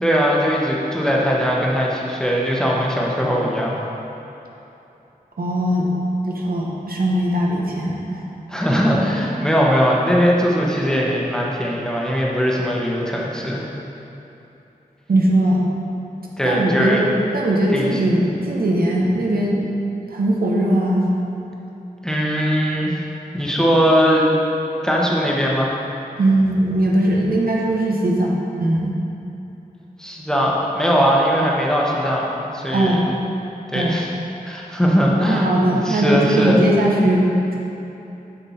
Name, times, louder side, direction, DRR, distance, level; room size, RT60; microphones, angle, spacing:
voice 1, 0.0-3.8 8.5-13.6 16.4-17.0 17.7-18.0 22.0-22.9 23.3-24.2 24.8-25.7 30.0-33.0 33.7-34.1 34.5-36.6, equal, 5° left, -4 dB, 1.0 m, -20 dB
voice 2, 5.4-5.9 6.3-8.2 15.1-15.6 16.4-17.1 17.3-19.6 20.1-21.1 26.2-28.3 28.6-29.0 32.7-33.0 33.7-34.0 35.2-37.5, right 1 dB, 80° right, -2 dB, 0.9 m, -19 dB
7.1 x 5.5 x 4.2 m, 3.0 s
wide cardioid pair, 85°, 15 cm